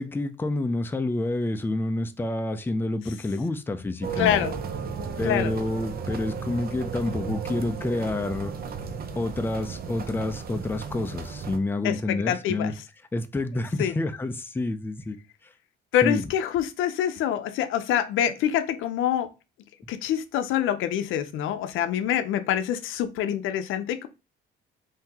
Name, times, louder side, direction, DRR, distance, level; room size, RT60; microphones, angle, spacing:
voice 1, 0.0-4.5 5.2-8.5 9.1-12.7 13.1-15.2 16.0-16.2, left 2 dB, 10° left, 0.4 m, -28 dB
sound 1, 4.0-11.6, right 6 dB, 50° right, 0.6 m, -34 dB
voice 2, 4.2-4.5 5.2-5.5 11.8-12.8 13.8-13.9 15.9-19.3 19.9-24.1, left 10 dB, 90° left, 0.5 m, -26 dB
3.6 x 2.7 x 2.9 m
cardioid pair, 90°, 20 cm